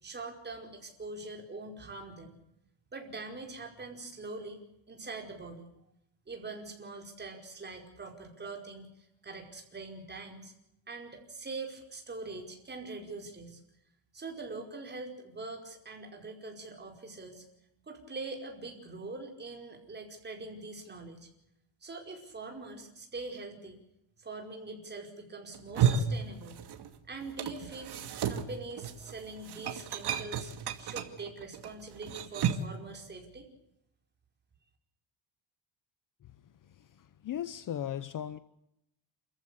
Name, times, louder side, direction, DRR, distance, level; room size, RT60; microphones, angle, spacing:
voice 1, 0.0-2.4 2.9-4.6 4.9-5.7 6.3-10.5 10.9-13.6 14.1-17.4 17.9-21.3 21.8-23.8 24.2-26.6 27.1-30.5 30.8-33.5, right 3 dB, 20° right, 4.9 m, -43 dB
sound 1, 25.5-27.0 27.2-32.8, right 8 dB, 55° right, 2.4 m, -33 dB
voice 2, 36.8-38.4, left 10 dB, 40° left, 0.9 m, -37 dB
28.5 x 14.5 x 8.3 m
cardioid pair, 155°, 48 cm